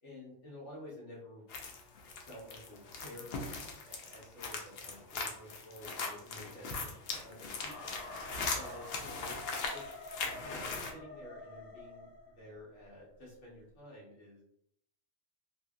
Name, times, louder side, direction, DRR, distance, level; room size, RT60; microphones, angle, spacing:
voice 1, 0.0-1.4 2.3-3.5 3.8-8.0 8.5-9.3 9.7-9.8 10.4-14.4, left 1 dB, 85° left, -5 dB, 1.3 m, -51 dB
sound 1, 1.5-10.9, left 4 dB, 65° left, 0.7 m, -40 dB
sound 2, 7.6-12.6, left 2 dB, 45° left, 1.1 m, -48 dB
2.7 x 2.7 x 2.2 m, 0.70 s
omnidirectional pair, 1.2 m